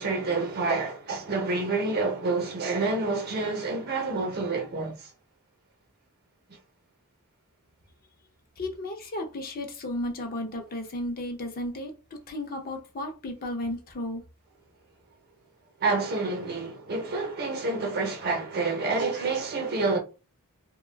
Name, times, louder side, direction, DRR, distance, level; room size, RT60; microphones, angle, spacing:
voice 1, 0.0-5.1 15.8-20.0, right 3 dB, 45° right, 0.8 m, -28 dB
voice 2, 8.6-14.2, left 1 dB, 40° left, 0.6 m, -34 dB
2.3 x 2.2 x 3.2 m
head